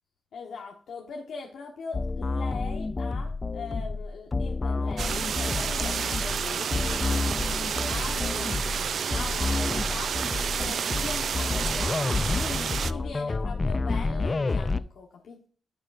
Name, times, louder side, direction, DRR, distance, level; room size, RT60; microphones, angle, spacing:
voice 1, 0.3-10.2 10.5-11.9 12.3-15.5, left 5 dB, 75° left, 0 dB, 1.2 m, -41 dB
sound 1, 1.9-14.8, left 3 dB, 25° left, 0.3 m, -29 dB
sound 2, 5.0-12.9, right 7 dB, 65° right, 0.4 m, -30 dB
10.0 x 7.5 x 2.5 m, 0.42 s
cardioid pair, 110°, 0 cm